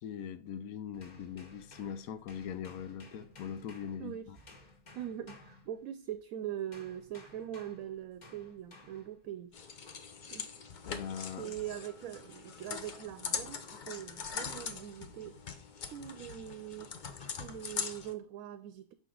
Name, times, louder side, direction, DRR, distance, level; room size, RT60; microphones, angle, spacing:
voice 1, 0.0-4.4 10.9-11.5, left 8 dB, 80° left, 1.1 m, -41 dB
sound 1, 0.9-6.2 6.7-9.2 9.9-10.2, left 2 dB, 30° left, 1.2 m, -56 dB
voice 2, 4.0-4.3 4.9-9.5 10.3-10.5 11.4-15.4 15.8-16.9 17.4-18.9, right 11 dB, 75° right, 1.0 m, -42 dB
sound 2, 9.5-18.1, left 6 dB, 50° left, 0.6 m, -42 dB
6.1 x 4.5 x 3.8 m
omnidirectional pair, 1.5 m